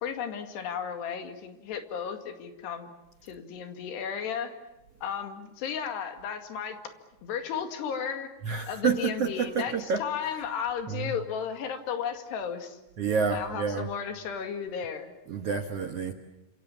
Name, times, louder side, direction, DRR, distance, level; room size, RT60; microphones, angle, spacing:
voice 1, 0.0-2.9 3.2-4.5 5.0-6.8 7.2-8.3 8.7-12.8 13.3-15.1, left 7 dB, 80° left, 6 dB, 4.3 m, -34 dB
voice 2, 8.4-10.0 10.9-11.1 13.0-13.9 15.3-16.1, right 5 dB, 85° right, 7 dB, 1.3 m, -29 dB
29.0 x 27.0 x 7.3 m, 0.96 s
omnidirectional pair, 4.8 m